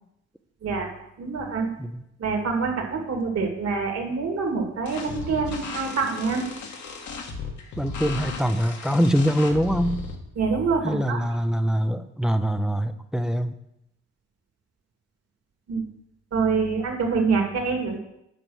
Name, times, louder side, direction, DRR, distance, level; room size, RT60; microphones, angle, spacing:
voice 1, 1.2-1.7 2.2-6.5 10.4-11.2 15.7-15.8 16.3-18.0, right 4 dB, 55° right, 2 dB, 2.3 m, -25 dB
sound 1, 4.9-10.2, left 4 dB, 70° left, 1.5 m, -35 dB
voice 2, 7.8-10.1 10.8-13.5, equal, ahead, 9 dB, 0.6 m, -24 dB
9.1 x 5.2 x 6.3 m, 0.80 s
cardioid pair, 90°, 30 cm